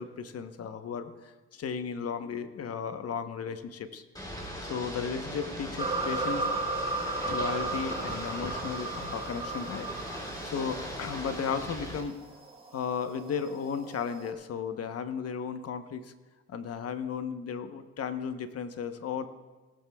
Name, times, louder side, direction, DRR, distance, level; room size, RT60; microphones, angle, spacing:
voice 1, 0.0-4.0 4.6-6.5 7.2-9.9 10.4-12.2 12.7-16.1 16.5-19.3, left 6 dB, 55° left, 9 dB, 0.9 m, -35 dB
Ocean / Boat Water vehicle, 4.1-12.0, equal, 15° left, 3.3 m, -39 dB
sound 1, 5.8-14.3, right 2 dB, 20° right, 1.7 m, -36 dB
17.5 x 14.0 x 2.3 m, 1.2 s
cardioid pair, 90°, 30 cm